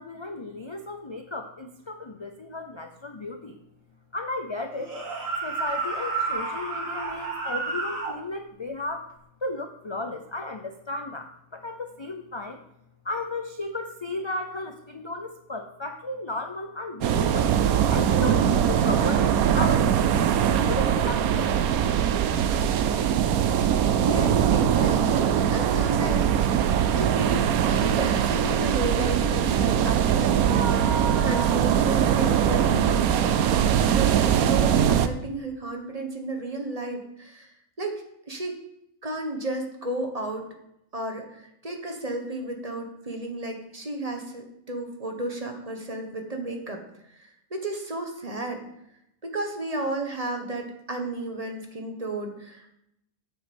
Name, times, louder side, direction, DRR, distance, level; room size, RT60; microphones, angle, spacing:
voice 1, 0.0-3.6 4.1-4.9 5.4-9.1 9.4-12.6 13.0-17.5 17.9-19.9 20.7-21.5, left 2 dB, 40° left, 5 dB, 0.4 m, -34 dB
sound 1, 4.8-8.2, right 4 dB, 65° right, 2.4 m, -30 dB
sound 2, 17.0-35.1, right 9 dB, 85° right, 1.1 m, -22 dB
voice 2, 24.0-26.4 26.6-37.5 37.8-38.6 39.0-40.5 40.9-46.8 47.2-48.6 49.2-52.7, right 2 dB, 25° right, 3 dB, 1.4 m, -33 dB
9.0 x 6.9 x 5.3 m, 0.78 s
omnidirectional pair, 1.5 m